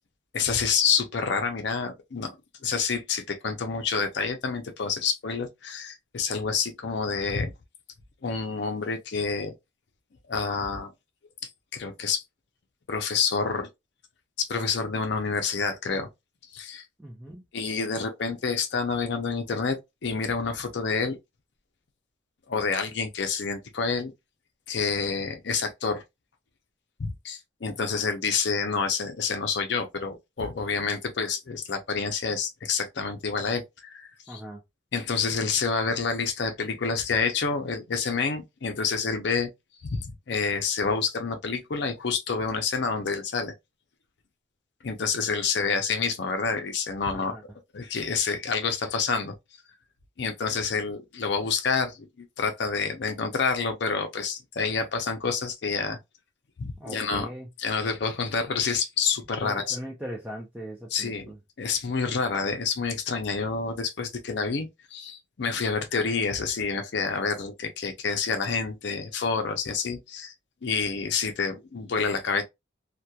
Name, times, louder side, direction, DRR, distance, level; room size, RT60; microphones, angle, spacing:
voice 1, 0.3-2.4 2.6-7.5 8.2-9.5 10.3-10.9 11.7-12.2 12.9-13.7 14.4-16.1 16.5-16.8 17.5-21.2 22.5-24.1 24.7-26.0 27.0-34.4 34.9-39.5 39.8-43.5 44.8-47.4 47.7-49.3 50.2-56.0 56.6-57.3 57.6-59.8 60.9-61.3 61.6-70.3 70.6-72.4, left 5 dB, 60° left, 0.5 m, -28 dB
voice 2, 17.0-17.4 27.7-28.0 34.3-34.6 47.1-47.4 56.8-57.5 59.4-61.4, equal, 5° right, 0.4 m, -39 dB
2.8 x 2.2 x 2.3 m
head